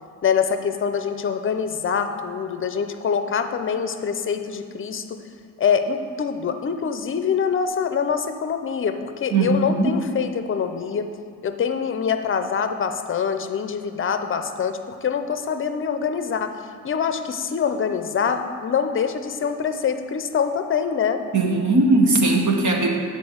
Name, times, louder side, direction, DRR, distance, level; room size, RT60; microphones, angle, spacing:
voice 1, 0.2-5.2 5.6-11.1 11.4-16.5 16.8-21.2, left 6 dB, 40° left, 8 dB, 0.5 m, -24 dB
voice 2, 9.3-10.0 21.3-23.0, right 2 dB, 60° right, 1 dB, 1.1 m, -19 dB
9.8 x 4.4 x 7.1 m, 2.4 s
wide cardioid pair, 170°, 33 cm